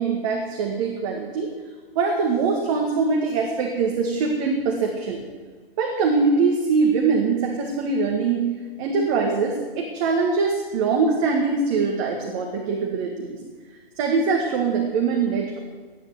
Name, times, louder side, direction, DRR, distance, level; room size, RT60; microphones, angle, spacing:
voice 1, 0.0-1.5 2.0-5.2 5.8-8.5 8.8-13.4 14.0-15.6, right 4 dB, 35° right, 1 dB, 2.2 m, -23 dB
16.5 x 10.0 x 8.0 m, 1.4 s
figure-of-eight pair, 135°, 30 cm